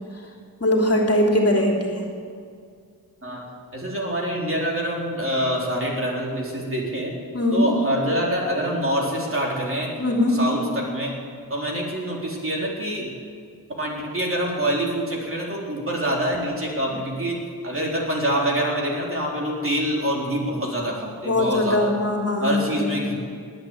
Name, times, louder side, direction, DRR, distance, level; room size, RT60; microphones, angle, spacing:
voice 1, 0.6-2.0 7.3-7.7 10.0-10.4 21.2-23.0, left 1 dB, 35° left, 0 dB, 3.1 m, -21 dB
voice 2, 3.7-7.1 7.5-9.9 10.3-11.1 11.5-13.1 13.8-21.9 22.4-23.1, equal, 35° right, -2 dB, 3.9 m, -25 dB
19.5 x 8.8 x 7.9 m, 2.2 s
cardioid pair, 65°, 39 cm